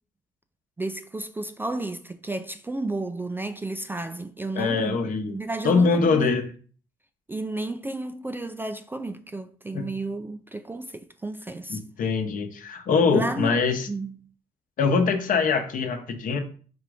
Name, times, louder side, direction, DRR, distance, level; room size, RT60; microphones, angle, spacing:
voice 1, 0.8-5.0 5.3-6.4 7.3-11.8 13.1-13.6 13.9-14.1, right 2 dB, 15° right, 0.3 m, -32 dB
voice 2, 4.5-5.3 5.6-6.5 9.7-9.9 11.7-13.9 14.8-16.4, left 4 dB, 60° left, 0.9 m, -23 dB
4.2 x 2.5 x 4.8 m
cardioid pair, 85°, 16 cm